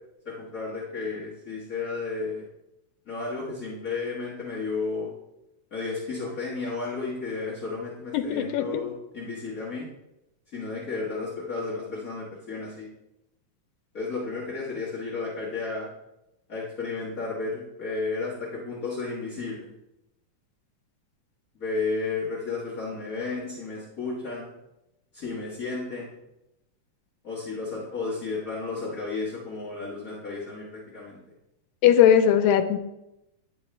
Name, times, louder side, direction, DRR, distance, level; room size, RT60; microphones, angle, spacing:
voice 1, 0.2-2.4 3.1-5.1 5.7-9.9 10.5-12.9 13.9-15.9 16.5-19.7 21.5-24.5 25.1-26.1 27.2-31.2, left 4 dB, 65° left, -7 dB, 0.8 m, -33 dB
voice 2, 8.1-8.7 31.8-32.8, left 9 dB, 85° left, 8 dB, 2.3 m, -19 dB
9.8 x 5.5 x 3.2 m, 0.90 s
omnidirectional pair, 3.9 m